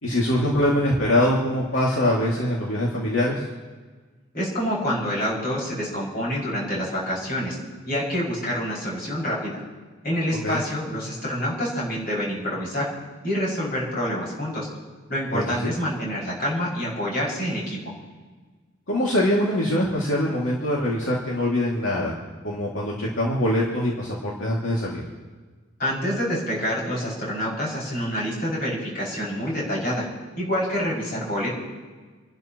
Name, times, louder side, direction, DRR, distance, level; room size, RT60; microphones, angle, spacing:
voice 1, 0.0-3.4 10.4-10.6 15.3-15.7 18.9-22.1 22.4-25.0, left 1 dB, 75° left, -4 dB, 2.4 m, -23 dB
voice 2, 4.3-7.6 7.9-9.5 10.0-12.9 13.2-14.7 15.1-17.8 25.8-30.1 30.4-31.5, equal, 45° left, -5 dB, 6.1 m, -27 dB
29.0 x 12.0 x 3.0 m, 1.4 s
head